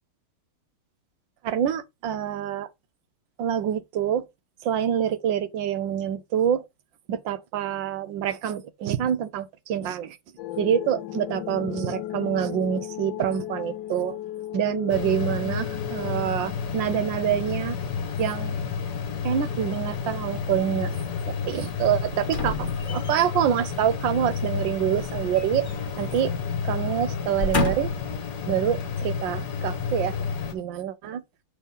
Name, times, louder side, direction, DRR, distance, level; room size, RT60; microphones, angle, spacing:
voice 1, 1.4-2.7 3.4-4.3 4.6-6.6 7.1-10.2 10.6-14.2 14.5-17.8 18.2-18.6 19.2-20.9 21.3-25.7 26.0-26.4 26.6-27.9 28.5-30.2 30.5-31.2, right 9 dB, 70° right, 1.2 m, -26 dB
sound 1, 10.4-21.4, left 13 dB, 75° left, 1.2 m, -37 dB
sound 2, 14.9-30.5, left 6 dB, 55° left, 1.5 m, -31 dB
sound 3, 22.3-23.4 25.0-26.1 26.4-26.6 27.2-28.1 28.8-28.9, left 3 dB, 35° left, 0.9 m, -30 dB
8.1 x 3.6 x 5.4 m
omnidirectional pair, 2.3 m